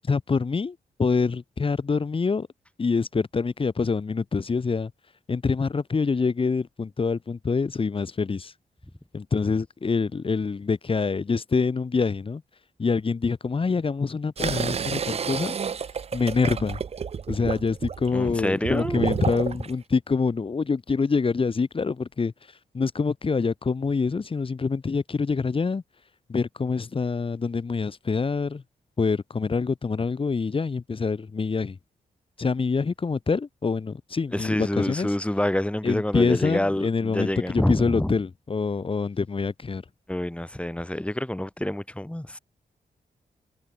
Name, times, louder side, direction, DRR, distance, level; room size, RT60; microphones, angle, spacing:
voice 1, 0.0-2.5 2.8-4.9 5.3-8.5 9.1-12.4 12.8-15.5 16.1-16.8 17.3-22.3 22.7-25.8 26.3-28.6 29.0-31.8 32.4-35.1 35.8-39.8, left 4 dB, 35° left, 1.2 m, -26 dB
sound 1, 14.4-19.7, right 6 dB, 40° right, 0.5 m, -30 dB
voice 2, 18.1-19.2 34.3-38.2 40.1-42.4, left 1 dB, 5° left, 4.1 m, -27 dB
wide cardioid pair, 105°, 16 cm